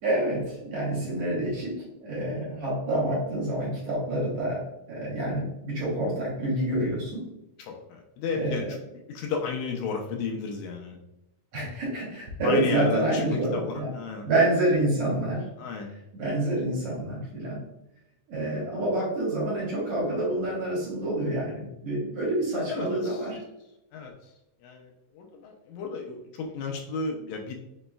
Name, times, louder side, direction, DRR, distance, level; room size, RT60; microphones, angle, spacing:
voice 1, 0.0-4.6 4.9-7.3 8.3-8.7 11.5-13.9 14.2-15.5 16.1-17.6 18.3-23.4, right 1 dB, 60° right, -6 dB, 2.3 m, -27 dB
voice 2, 7.6-8.8 9.1-11.0 12.4-14.3 15.6-15.9 22.7-23.3 23.9-24.3 24.6-27.6, left 5 dB, 80° left, 2 dB, 1.9 m, -34 dB
5.2 x 3.0 x 2.2 m, 0.88 s
omnidirectional pair, 3.4 m